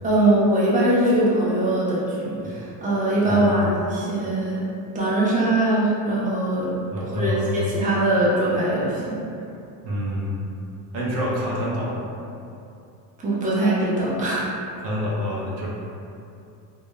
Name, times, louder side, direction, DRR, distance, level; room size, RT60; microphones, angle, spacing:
voice 1, 0.0-4.7 4.9-6.7 7.0-9.2 13.2-14.4, right 1 dB, 20° right, -7 dB, 0.6 m, -21 dB
voice 2, 3.2-3.7 6.9-7.5 9.8-10.4 10.9-12.1 14.8-15.7, equal, 85° right, -5 dB, 0.7 m, -27 dB
2.2 x 2.2 x 2.9 m, 2.6 s
supercardioid pair, 95°, 43 cm